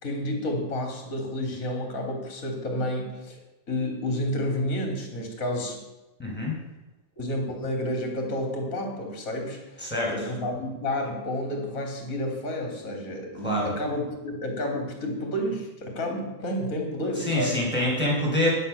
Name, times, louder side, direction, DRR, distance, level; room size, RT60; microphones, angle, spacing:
voice 1, 0.0-3.4 3.7-5.8 7.2-17.6, left 1 dB, 20° left, 4 dB, 3.6 m, -30 dB
voice 2, 6.2-6.6 9.8-10.1 13.4-13.7 17.2-18.5, left 1 dB, ahead, -2 dB, 7.1 m, -25 dB
16.0 x 11.0 x 7.1 m, 1.0 s
omnidirectional pair, 4.4 m